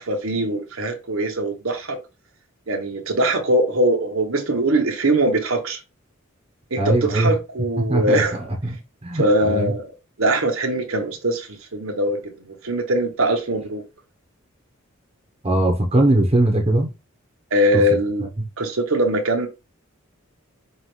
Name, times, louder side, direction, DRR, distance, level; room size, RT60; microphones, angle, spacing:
voice 1, 0.0-2.0 2.7-5.8 6.7-8.4 9.1-9.9 10.2-13.8 17.5-18.2 18.6-19.5, right 1 dB, 75° right, 1.0 m, -22 dB
voice 2, 6.8-7.3 7.8-9.7 15.4-16.9 17.7-17.8, right 1 dB, 30° right, 0.8 m, -20 dB
5.5 x 2.5 x 3.2 m
head